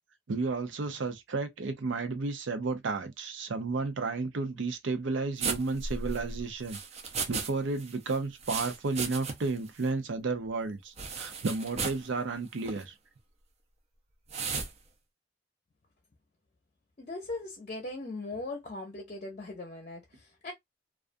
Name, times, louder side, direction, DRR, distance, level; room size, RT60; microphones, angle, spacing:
voice 1, 0.3-6.8 7.3-12.9, right 3 dB, 85° right, 0.6 m, -32 dB
sound 1, 5.4-7.5 7.8-9.6 9.8-9.9 11.0-12.1 12.6-12.8 14.3-14.7, right 5 dB, 35° right, 0.5 m, -35 dB
voice 2, 17.0-20.5, left 2 dB, 40° left, 0.6 m, -39 dB
2.4 x 2.3 x 2.5 m
head